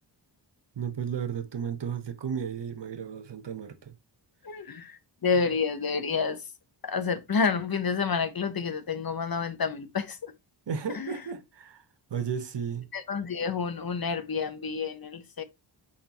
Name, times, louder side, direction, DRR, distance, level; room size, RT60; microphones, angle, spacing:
voice 1, 0.8-3.9 10.7-11.8 12.1-12.9, right 7 dB, 70° right, 1.1 m, -34 dB
voice 2, 4.4-6.5 6.8-10.3 10.9-11.2 12.9-15.4, left 5 dB, 55° left, 1.0 m, -29 dB
7.3 x 4.4 x 3.0 m
wide cardioid pair, 85°, 44 cm